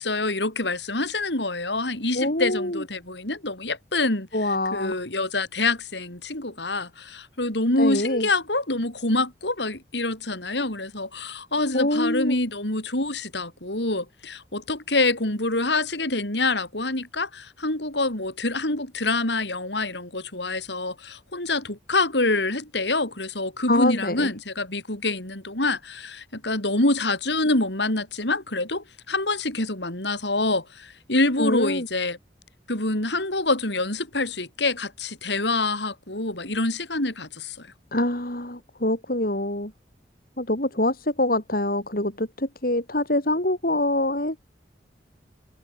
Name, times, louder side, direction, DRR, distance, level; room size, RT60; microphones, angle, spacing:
voice 1, 0.0-4.3 4.7-32.2 32.7-37.7, left 2 dB, 75° left, 5.7 m, -26 dB
voice 2, 2.1-2.8 4.3-5.0 7.8-8.3 11.7-12.4 23.7-24.3 31.4-31.9 37.9-39.7 40.4-44.5, left 1 dB, 50° left, 3.7 m, -25 dB
head